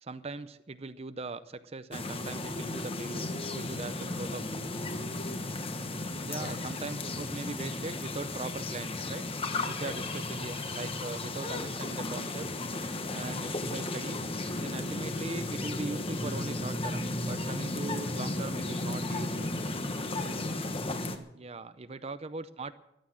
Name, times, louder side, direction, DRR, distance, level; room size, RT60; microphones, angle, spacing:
voice 1, 0.0-4.7 6.3-9.3 9.7-10.0 10.3-12.5 13.1-14.2 14.6-19.5 21.3-22.7, right 3 dB, 35° right, 12 dB, 0.6 m, -40 dB
sound 1, 1.9-21.2, left 2 dB, 30° left, 1.2 m, -34 dB
voice 2, 9.8-10.2 20.2-21.3, left 1 dB, 45° left, 2 dB, 2.8 m, -48 dB
14.0 x 11.5 x 7.4 m, 0.84 s
head